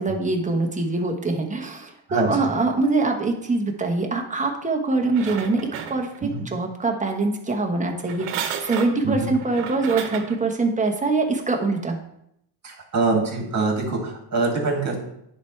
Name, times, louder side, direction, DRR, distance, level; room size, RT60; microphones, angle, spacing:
voice 1, 0.0-5.6 5.9-12.0, right 3 dB, 15° right, 2 dB, 1.1 m, -24 dB
sound 1, 4.9-6.4 8.0-10.4 11.0-11.1, right 8 dB, 75° right, 1.0 m, -33 dB
voice 2, 12.6-15.0, right 3 dB, 35° right, 0 dB, 2.4 m, -24 dB
10.5 x 4.6 x 3.3 m, 0.77 s
cardioid pair, 120°, 50 cm